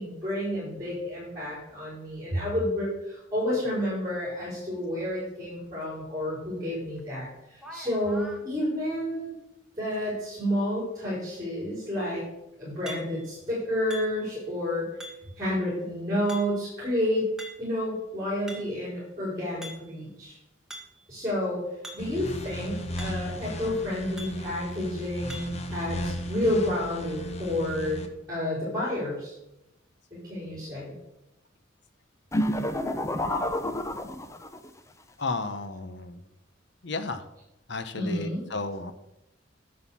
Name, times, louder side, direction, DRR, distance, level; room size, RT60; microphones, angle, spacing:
voice 1, 0.0-9.3 9.8-12.2 12.6-15.1 15.4-17.3 17.6-20.4 21.1-21.6 21.9-29.3 30.1-30.9 37.9-38.4, left 1 dB, 20° right, -7 dB, 5.5 m, -30 dB
sound 1, 7.0-7.1 7.5-8.4 12.9-13.4 13.9-14.4 15.0-15.4 16.3-16.8 17.4-17.8 18.2-18.9 19.6-20.0 20.7-21.0 21.8-22.1 22.4-22.5 23.0-23.4 24.2-24.5 25.3-25.7, equal, 5° right, 1.8 m, -44 dB
sound 2, 22.0-28.1, equal, 35° left, 1.3 m, -35 dB
sound 3, 32.3-34.7, left 1 dB, 15° left, 0.7 m, -29 dB
voice 2, 35.2-36.2 36.8-37.2 37.7-38.9, left 3 dB, 65° left, 10 dB, 1.0 m, -33 dB
11.0 x 6.6 x 7.3 m, 0.89 s
head